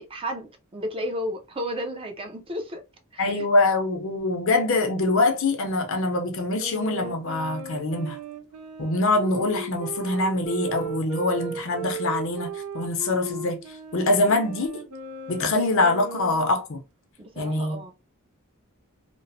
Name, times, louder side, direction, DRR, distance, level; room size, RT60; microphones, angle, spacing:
voice 1, 0.0-2.8 3.1-3.5 17.2-17.9, equal, 25° right, 0.4 m, -33 dB
voice 2, 3.2-8.2 8.8-12.5 12.7-13.6 13.9-14.8 15.3-16.8 17.4-17.8, left 2 dB, 60° left, 0.6 m, -24 dB
Wind instrument woodwind instrument, 6.6-16.6, right 4 dB, 85° right, 0.5 m, -36 dB
2.9 x 2.0 x 2.6 m
head